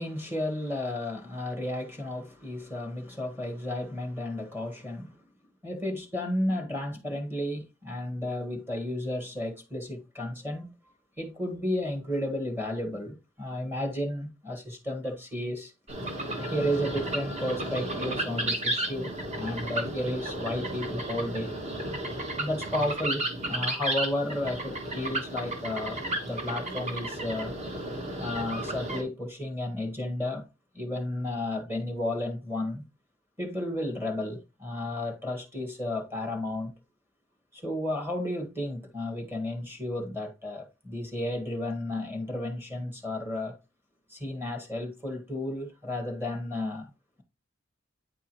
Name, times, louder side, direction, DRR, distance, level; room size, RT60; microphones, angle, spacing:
voice 1, 0.0-5.2 5.6-10.7 11.2-19.1 19.4-21.5 22.4-27.5 28.2-30.4 30.7-32.8 33.4-36.7 37.5-43.6 44.1-46.9, left 1 dB, 10° right, 1.4 m, -33 dB
sound 1, 15.9-29.0, right 1 dB, 35° right, 1.3 m, -33 dB
8.9 x 4.7 x 3.0 m
head